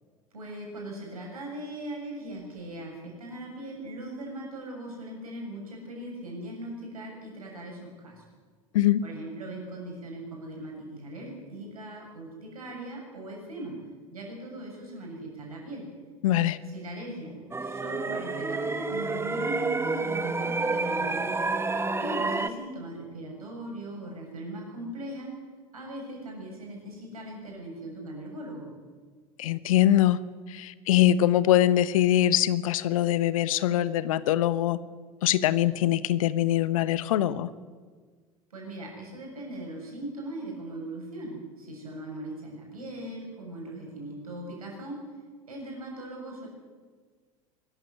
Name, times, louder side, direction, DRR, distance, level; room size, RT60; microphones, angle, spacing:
voice 1, 0.3-8.2 9.0-13.8 14.1-15.9 16.7-21.3 22.0-25.3 25.7-28.7 38.5-45.2 45.5-46.5, right 1 dB, 80° right, 0 dB, 7.4 m, -39 dB
voice 2, 16.2-16.6 29.4-30.2 30.5-34.8 35.2-37.5, left 12 dB, 70° left, 16 dB, 1.0 m, -23 dB
sound 1, 17.5-22.5, right 3 dB, 15° right, 1.5 m, -29 dB
24.0 x 14.0 x 9.6 m, 1.5 s
figure-of-eight pair, 75°, 18 cm